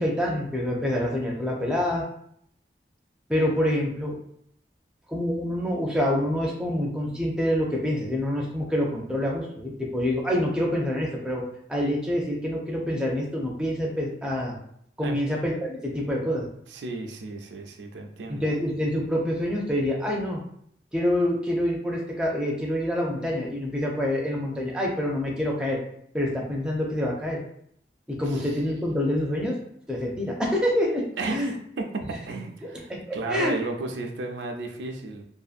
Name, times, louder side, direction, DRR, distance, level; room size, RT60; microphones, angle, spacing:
voice 1, 0.0-2.0 3.3-4.1 5.1-11.4 11.7-14.6 15.0-16.5 18.3-20.4 20.9-25.8 26.1-27.4 28.2-29.5 29.9-31.0 31.3-31.5 32.6-33.5, left 1 dB, 5° right, -2 dB, 0.4 m, -26 dB
voice 2, 16.7-18.5 28.3-28.5 31.2-35.2, right 3 dB, 85° right, 3 dB, 0.4 m, -33 dB
2.6 x 2.5 x 2.4 m, 0.69 s
head